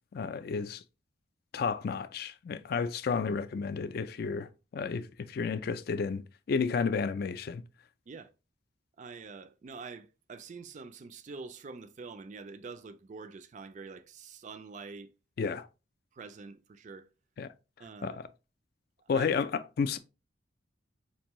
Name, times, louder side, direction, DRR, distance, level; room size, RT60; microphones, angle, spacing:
voice 1, 0.1-0.8 1.5-6.2 6.5-7.6 15.4-15.7 17.4-17.5 18.0-18.2 19.1-20.0, left 5 dB, 50° left, 0.3 m, -32 dB
voice 2, 9.0-15.1 16.1-17.1 17.8-18.2 19.0-19.4, right 4 dB, 40° right, 0.3 m, -46 dB
4.4 x 2.6 x 2.9 m
head